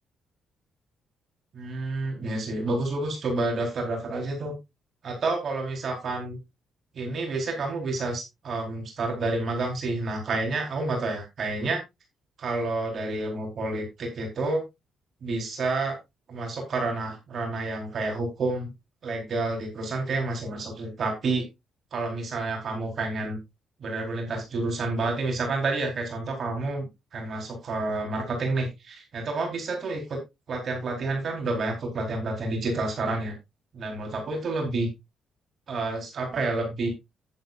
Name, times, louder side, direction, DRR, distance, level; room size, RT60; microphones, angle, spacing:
voice 1, 1.5-4.5 5.0-6.4 7.0-11.8 12.4-14.6 15.2-15.9 16.3-18.7 19.0-21.4 21.9-23.4 23.8-26.9 27.1-30.2 30.5-33.3 33.7-34.9 35.7-36.9, right 2 dB, 55° right, 1 dB, 4.4 m, -29 dB
11.5 x 10.0 x 2.6 m, 0.22 s
cardioid pair, 90°, 0 cm